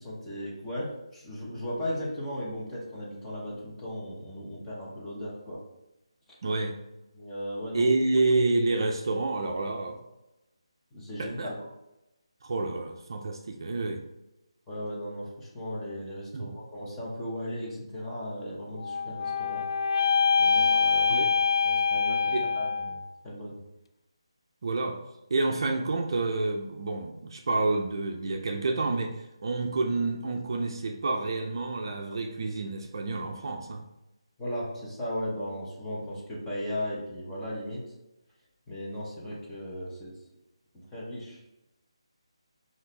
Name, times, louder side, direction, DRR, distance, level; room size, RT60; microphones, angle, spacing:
voice 1, 0.0-5.6 7.1-7.9 10.9-11.7 14.7-19.7 20.4-21.1 21.6-23.0 23.2-23.6 34.4-37.9 38.7-40.2 40.7-41.4, equal, 10° left, -7 dB, 0.9 m, -36 dB
voice 2, 6.4-6.8 7.7-10.0 11.2-11.5 12.4-14.0 16.3-16.5 21.1-21.3 22.3-22.4 24.6-25.0 25.3-33.8, right 3 dB, 50° right, 3 dB, 0.5 m, -28 dB
sound 1, 18.8-23.1, left 5 dB, 55° left, 0.3 m, -25 dB
5.6 x 2.6 x 3.3 m, 0.94 s
figure-of-eight pair, 170°, 3 cm